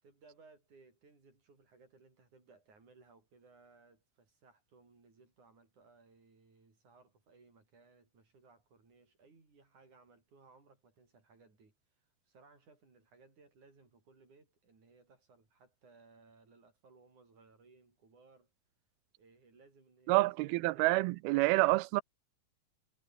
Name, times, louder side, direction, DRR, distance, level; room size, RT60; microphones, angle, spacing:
voice 1, 0.0-18.5 19.2-21.2, right 4 dB, 50° right, 8.7 m, -63 dB
voice 2, 20.1-22.0, right 21 dB, 90° right, 2.6 m, -28 dB
omnidirectional pair, 4.3 m